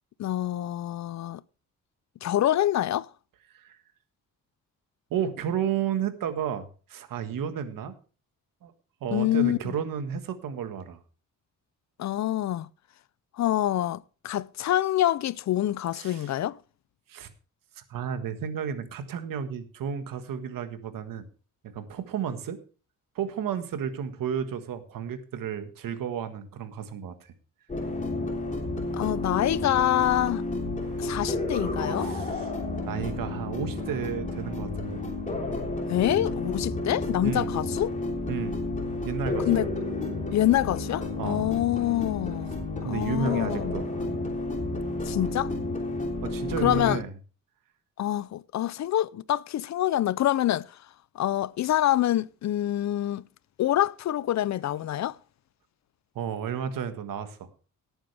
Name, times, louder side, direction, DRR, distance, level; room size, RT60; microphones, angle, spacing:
voice 1, 0.2-1.4 2.2-3.1 9.1-9.7 12.0-12.7 13.4-16.6 28.9-30.4 31.0-32.1 35.9-37.9 39.5-39.7 40.3-42.5 42.8-43.8 45.1-45.5 46.6-47.0 48.0-50.7 51.2-53.2 53.6-55.2, left 13 dB, 55° left, 0.5 m, -26 dB
voice 2, 5.1-7.9 8.6-8.7 9.0-11.0 15.9-16.3 17.1-17.3 17.7-21.2 21.6-22.6 23.1-27.3 32.0-32.5 32.8-35.0 37.2-37.5 38.3-38.6 39.0-39.7 41.2-41.5 42.8-44.1 46.2-47.1 56.1-57.5, right 8 dB, 85° right, 1.6 m, -32 dB
sound 1, 27.7-47.0, left 2 dB, 25° left, 3.3 m, -31 dB
18.0 x 8.9 x 3.4 m
cardioid pair, 130°, 33 cm